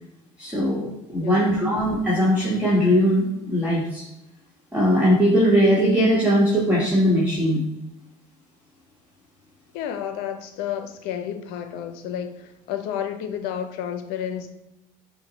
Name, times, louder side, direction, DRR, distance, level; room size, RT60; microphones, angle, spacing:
voice 1, 0.4-4.0 4.7-7.6, equal, 10° right, -7 dB, 1.3 m, -20 dB
voice 2, 1.2-1.6 9.7-14.5, left 9 dB, 75° left, 8 dB, 0.6 m, -31 dB
5.7 x 2.2 x 4.0 m, 0.90 s
supercardioid pair, 85°, 16 cm